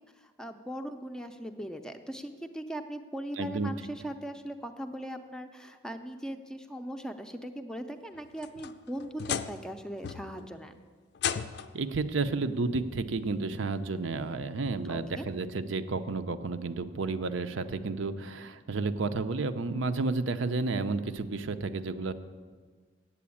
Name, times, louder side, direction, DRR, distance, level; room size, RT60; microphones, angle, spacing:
voice 1, 0.0-10.8 14.9-15.3, equal, 5° left, 6 dB, 0.5 m, -39 dB
voice 2, 3.4-3.7 11.7-22.1, right 3 dB, 80° right, 9 dB, 0.6 m, -31 dB
sound 1, 8.1-9.7 10.0-10.5 11.2-11.9 13.0-13.1 13.8-13.9 15.4-15.5, left 8 dB, 60° left, 0.4 m, -35 dB
8.4 x 7.8 x 8.5 m, 1.5 s
head